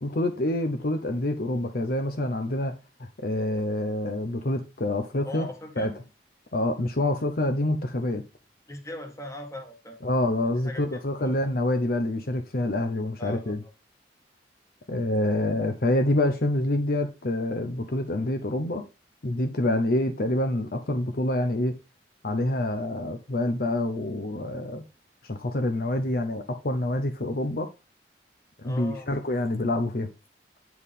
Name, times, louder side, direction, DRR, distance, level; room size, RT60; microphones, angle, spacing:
voice 1, 0.0-2.7 3.2-5.5 5.8-5.9 6.5-8.2 10.0-13.6 14.9-18.9 19.2-21.7 22.2-24.9 25.2-27.7 28.6-30.1, left 1 dB, 55° left, 0.8 m, -27 dB
voice 2, 5.2-5.9 8.7-10.0 10.6-10.8 11.2-11.3 13.2-13.7 28.6-29.1, left 1 dB, 15° left, 1.6 m, -39 dB
8.3 x 4.8 x 3.6 m
head